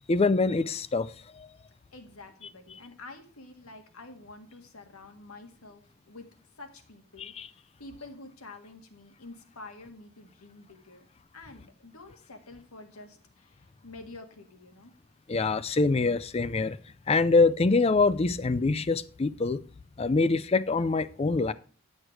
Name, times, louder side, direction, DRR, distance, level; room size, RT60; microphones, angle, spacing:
voice 1, 0.1-1.5 7.2-7.5 15.3-16.8 17.1-19.6 20.0-21.5, left 3 dB, 30° left, 0.4 m, -25 dB
voice 2, 1.9-5.8 6.1-6.3 6.6-11.1 11.3-14.9, left 2 dB, 90° left, 1.7 m, -48 dB
10.5 x 6.4 x 4.6 m
head